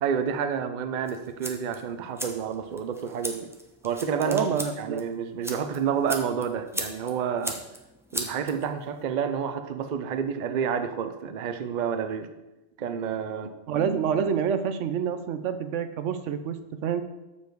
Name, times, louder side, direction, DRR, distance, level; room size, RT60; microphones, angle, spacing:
voice 1, 0.0-3.5 3.8-4.5 4.8-7.6 8.1-12.3 12.8-13.5, right 7 dB, 50° right, 8 dB, 0.6 m, -29 dB
sound 1, 1.0-9.0, equal, 5° right, 0.7 m, -38 dB
voice 2, 4.2-5.0 13.7-17.0, right 7 dB, 75° right, 10 dB, 1.0 m, -27 dB
7.1 x 7.1 x 4.6 m, 1.0 s
omnidirectional pair, 1.3 m